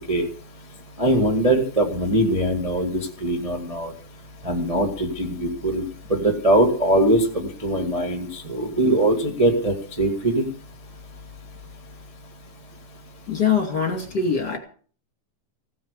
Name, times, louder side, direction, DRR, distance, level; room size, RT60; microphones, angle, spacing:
voice 1, 1.0-3.9 4.4-5.8 6.1-7.2 7.6-10.4, right 1 dB, 25° right, 1 dB, 0.7 m, -21 dB
voice 2, 13.3-14.6, left 6 dB, 30° left, 4 dB, 2.8 m, -23 dB
16.5 x 9.5 x 6.7 m, 0.43 s
omnidirectional pair, 4.2 m